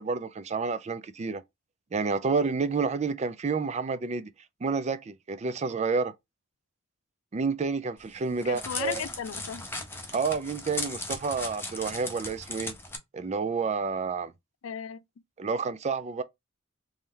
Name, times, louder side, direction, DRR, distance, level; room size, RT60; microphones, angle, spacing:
voice 1, 0.0-1.4 1.9-4.3 4.6-6.1 7.3-9.1 10.1-12.7 13.1-14.3 15.4-16.2, right 4 dB, 35° right, 0.4 m, -29 dB
Crackle, 8.0-13.0, left 2 dB, 10° left, 0.8 m, -37 dB
voice 2, 8.3-9.7 14.6-15.0, left 7 dB, 70° left, 0.4 m, -35 dB
3.2 x 2.8 x 3.7 m
head